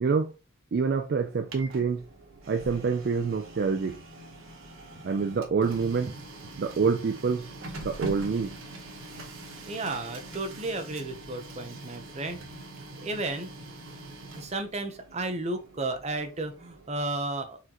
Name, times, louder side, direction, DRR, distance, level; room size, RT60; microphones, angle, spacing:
voice 1, 0.0-0.3 0.7-2.0 2.5-4.0 5.0-6.2 6.6-7.5 7.8-8.5, right 5 dB, 50° right, 0.4 m, -26 dB
Printer, 1.2-17.0, right 2 dB, 85° right, 1.1 m, -44 dB
voice 2, 9.7-12.4 13.0-13.5 14.3-17.6, right 2 dB, 35° right, 0.7 m, -33 dB
4.2 x 3.8 x 2.9 m
head